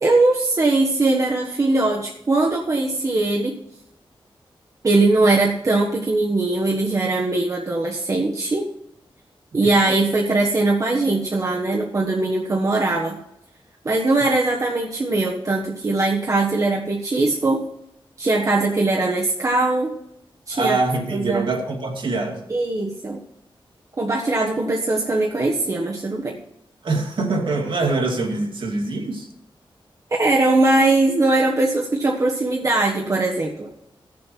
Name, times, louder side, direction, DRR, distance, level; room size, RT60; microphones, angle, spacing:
voice 1, 0.0-3.6 4.8-8.7 9.5-13.2 13.8-17.6 18.2-19.9 20.5-20.8 21.1-21.5 22.5-23.2 24.0-26.4 30.1-33.7, right 2 dB, 35° right, -2 dB, 1.4 m, -20 dB
voice 2, 9.6-10.0 20.5-22.4 26.8-29.3, right 3 dB, 65° right, 1 dB, 2.5 m, -24 dB
16.5 x 7.2 x 4.6 m, 0.83 s
wide cardioid pair, 150°, 9 cm